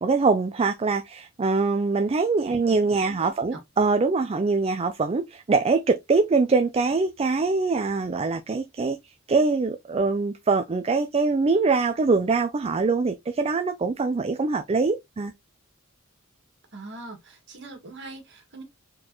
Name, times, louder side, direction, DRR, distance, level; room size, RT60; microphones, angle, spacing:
voice 1, 0.0-9.0 9.3-15.3, right 4 dB, 30° right, 0.4 m, -23 dB
voice 2, 3.2-3.6 16.7-18.6, right 2 dB, 60° right, 1.8 m, -42 dB
4.6 x 3.8 x 3.0 m
head